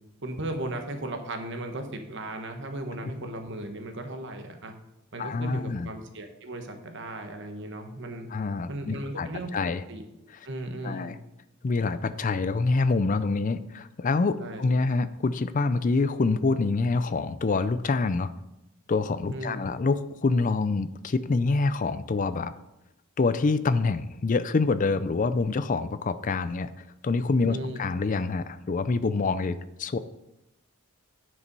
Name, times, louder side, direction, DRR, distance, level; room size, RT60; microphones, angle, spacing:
voice 1, 0.2-4.7 5.1-8.3 8.7-9.5 9.9-10.0 10.4-11.1 14.4-14.6 19.3-19.5 27.4-27.8, right 1 dB, 55° right, 5 dB, 1.1 m, -36 dB
voice 2, 5.2-5.9 8.3-9.8 10.8-11.1 11.6-18.3 18.9-22.5 23.2-26.7 27.0-30.0, left 3 dB, 35° left, 13 dB, 0.4 m, -26 dB
9.8 x 5.2 x 5.3 m, 0.90 s
head